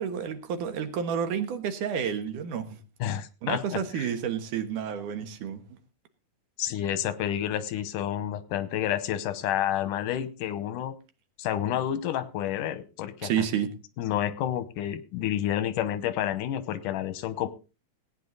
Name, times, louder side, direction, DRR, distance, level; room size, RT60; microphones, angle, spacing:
voice 1, 0.0-2.8 3.4-5.6 13.2-13.7, right 8 dB, 80° right, 7 dB, 2.9 m, -30 dB
voice 2, 3.0-4.1 6.6-10.9 11.4-13.3 14.0-17.5, left 11 dB, 85° left, 13 dB, 2.6 m, -29 dB
17.0 x 9.3 x 4.0 m, 0.32 s
omnidirectional pair, 3.6 m